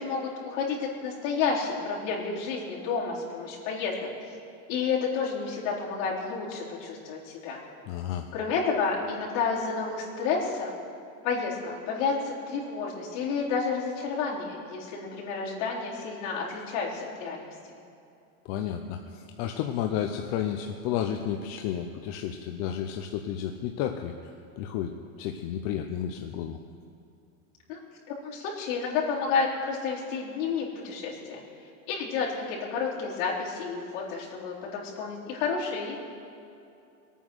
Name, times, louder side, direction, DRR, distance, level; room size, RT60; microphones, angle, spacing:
voice 1, 0.0-4.0 4.2-4.3 4.7-7.6 8.3-10.7 11.2-17.5 27.7-27.8 28.1-31.4 31.9-36.0, left 5 dB, 55° left, -5 dB, 4.2 m, -30 dB
voice 2, 7.9-8.3 18.4-24.2 24.6-26.6, left 9 dB, 40° left, 5 dB, 0.7 m, -32 dB
23.0 x 9.2 x 6.3 m, 2.7 s
supercardioid pair, 165°, 42 cm